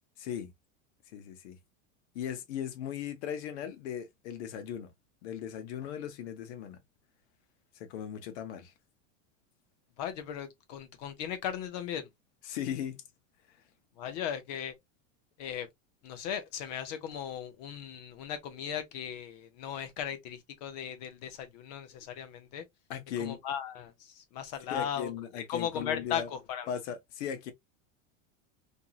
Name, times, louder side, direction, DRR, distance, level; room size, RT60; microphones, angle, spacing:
voice 1, 0.2-0.5 1.1-1.6 2.1-4.9 5.2-6.8 7.7-8.7 12.4-13.0 22.9-23.4 24.7-26.3 26.7-27.5, left 9 dB, 60° left, 0.9 m, -38 dB
voice 2, 10.0-12.1 14.0-14.8 15.4-15.7 16.0-22.6 23.2-26.7, left 9 dB, 35° left, 0.4 m, -37 dB
2.8 x 2.6 x 2.2 m
supercardioid pair, 170°, 38 cm